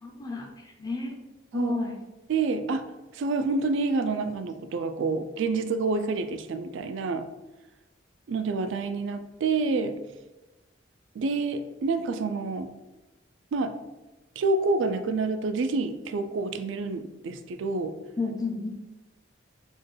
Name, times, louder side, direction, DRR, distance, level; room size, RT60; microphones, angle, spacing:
voice 1, 0.0-1.2 1.5-1.9 18.2-18.7, left 3 dB, 20° left, 1 dB, 0.4 m, -31 dB
voice 2, 2.3-2.8 3.1-7.3 8.3-9.9 11.2-12.7 13.5-13.7 14.4-17.9, right 3 dB, 75° right, 10 dB, 0.3 m, -28 dB
4.2 x 2.3 x 3.2 m, 1.1 s
head